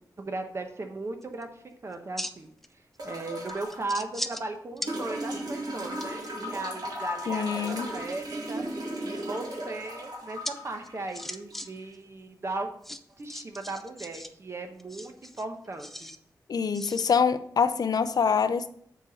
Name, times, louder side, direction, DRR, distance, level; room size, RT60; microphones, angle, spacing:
voice 1, 0.2-2.5 3.0-8.6 9.0-12.7 13.2-16.1, right 2 dB, 40° right, 5 dB, 0.9 m, -37 dB
sound 1, 1.2-1.4 1.9-2.7 2.9-3.0 3.5-4.5 4.8-4.9 5.4-6.3 8.4-9.0 10.4-10.5 10.8-11.7 11.9-12.0 12.8-14.3 14.8-16.2 16.7-17.1, equal, 5° left, 0.4 m, -38 dB
sound 2, 3.0-3.8 4.9-11.9 13.2-13.3, equal, 65° right, 2.0 m, -36 dB
voice 2, 7.3-7.9 16.5-18.7, left 6 dB, 60° left, 11 dB, 0.5 m, -25 dB
7.1 x 4.1 x 5.6 m, 0.64 s
wide cardioid pair, 150°, 7 cm